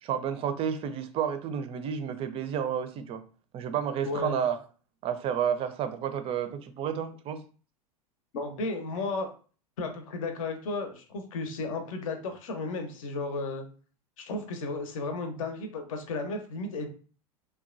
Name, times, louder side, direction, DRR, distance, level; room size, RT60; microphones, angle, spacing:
voice 1, 0.0-3.2 3.5-4.6 5.0-7.4, right 8 dB, 30° right, 0.4 m, -31 dB
voice 2, 4.0-4.4 8.3-9.3 9.8-13.6 14.2-16.9, left 3 dB, 60° left, 0.7 m, -34 dB
2.9 x 2.2 x 2.5 m
figure-of-eight pair, 90°, 19 cm